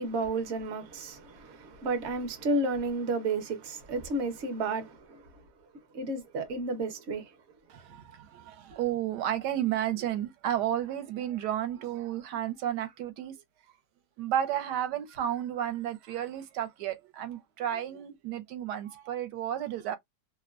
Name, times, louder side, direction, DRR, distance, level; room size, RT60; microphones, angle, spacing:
voice 1, 0.0-5.4 5.9-7.4, right 2 dB, 50° right, 0.9 m, -32 dB
voice 2, 7.7-13.3 14.2-20.0, right 11 dB, 75° right, 1.2 m, -32 dB
3.0 x 2.1 x 2.4 m
omnidirectional pair, 1.9 m